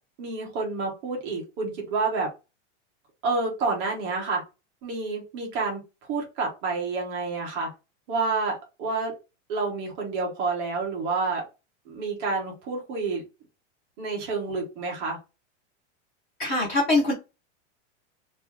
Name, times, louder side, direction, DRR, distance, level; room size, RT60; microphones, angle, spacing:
voice 1, 0.2-2.3 3.2-4.4 4.8-5.8 6.1-7.7 8.1-9.1 9.5-11.4 11.9-13.2 14.0-15.2, right 3 dB, 15° right, 0.3 m, -29 dB
voice 2, 16.4-17.1, left 2 dB, 25° left, 0.7 m, -22 dB
2.9 x 2.2 x 3.3 m
supercardioid pair, 170°, 37 cm